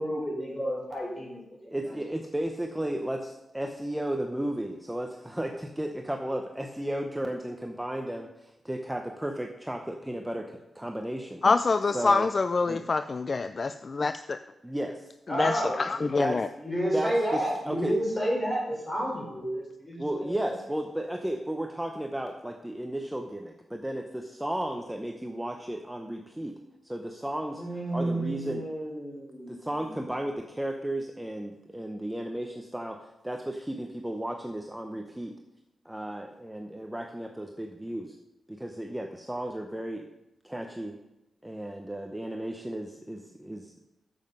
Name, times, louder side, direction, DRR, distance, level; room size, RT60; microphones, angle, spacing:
voice 1, 0.0-2.0 15.3-16.2 16.6-20.5 27.5-29.9, equal, 20° left, -3 dB, 4.5 m, -31 dB
voice 2, 1.7-11.4 11.8-12.3 12.7-12.8 14.6-15.1 16.2-16.4 16.9-18.0 20.0-26.6 26.8-27.6 27.9-28.6 29.5-35.3 35.8-38.2 38.5-40.1 40.4-40.9 41.4-43.7, right 1 dB, 10° right, 3 dB, 0.7 m, -34 dB
voice 3, 11.4-14.4 15.4-16.5, left 4 dB, 45° left, 11 dB, 0.3 m, -26 dB
9.3 x 7.5 x 5.4 m, 0.94 s
wide cardioid pair, 100°, 0 cm